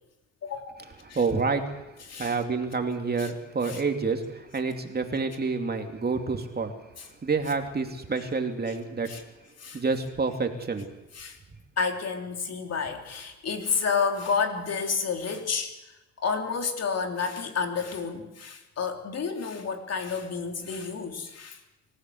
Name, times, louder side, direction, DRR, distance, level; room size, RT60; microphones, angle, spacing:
voice 1, 0.4-1.2 2.1-2.3 3.2-3.3 3.6-3.8 7.0-7.1 9.1-9.2 9.6-9.8 11.1-11.4 11.8-15.7 16.2-21.6, left 5 dB, 55° left, 4 dB, 3.4 m, -30 dB
voice 2, 1.1-1.8 2.2-6.7 7.2-9.2 9.7-10.9, right 4 dB, 30° right, 5 dB, 2.7 m, -28 dB
25.0 x 15.0 x 7.9 m, 0.97 s
cardioid pair, 90°, 30 cm